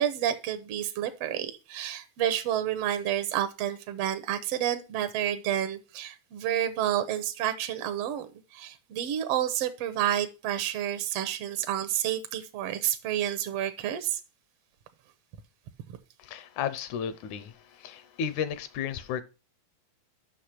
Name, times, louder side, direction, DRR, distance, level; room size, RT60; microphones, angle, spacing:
voice 1, 0.0-14.2, right 11 dB, 80° right, 1.4 m, -30 dB
voice 2, 16.2-19.2, left 8 dB, 75° left, 2.1 m, -33 dB
6.5 x 6.2 x 5.8 m
omnidirectional pair, 3.6 m